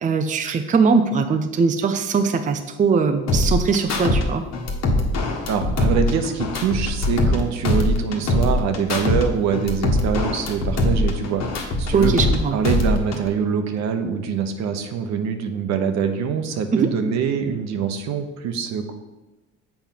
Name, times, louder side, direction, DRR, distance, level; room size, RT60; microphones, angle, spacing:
voice 1, 0.0-4.4 11.9-12.6 16.7-16.9, right 5 dB, 25° right, 6 dB, 0.6 m, -20 dB
sound 1, 3.3-4.2 4.5-7.4 7.6-9.2 9.5-12.4 12.6-13.3, left 2 dB, 60° left, 1.5 m, -22 dB
voice 2, 5.5-12.1 12.5-18.9, right 6 dB, 65° right, 7 dB, 1.0 m, -24 dB
7.2 x 4.4 x 5.7 m, 1.1 s
supercardioid pair, 90°, 30 cm